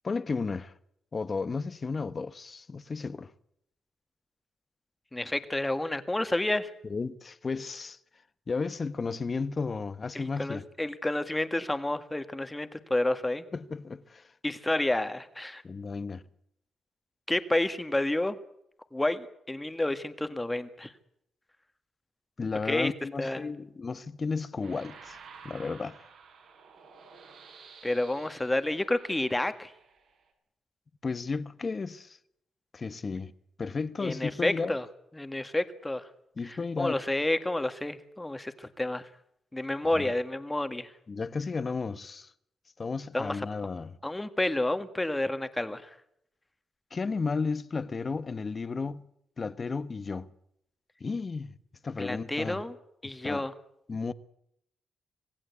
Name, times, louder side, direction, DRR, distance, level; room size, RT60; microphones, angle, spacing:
voice 1, 0.0-0.7 1.1-3.3 6.9-8.0 8.5-10.6 13.5-14.3 15.6-16.2 22.4-25.2 25.4-26.0 31.0-32.2 32.7-33.3 33.6-34.7 36.4-37.0 39.8-40.1 41.1-42.3 42.8-43.9 46.9-49.1 49.4-50.3 51.0-51.6 51.8-52.6 53.0-53.4 53.9-54.1, left 4 dB, 30° left, 1.2 m, -33 dB
voice 2, 5.1-6.7 10.1-13.5 14.4-15.6 17.3-18.4 18.9-20.9 22.7-22.9 23.2-23.5 27.8-29.7 34.0-34.9 35.1-36.1 36.4-39.1 39.5-40.9 43.1-43.5 44.0-45.9 52.0-52.8 53.0-53.5, left 1 dB, 10° left, 1.8 m, -30 dB
sound 1, 24.6-30.3, right 5 dB, 70° right, 7.1 m, -52 dB
26.5 x 18.5 x 8.4 m
wide cardioid pair, 155°, 0 cm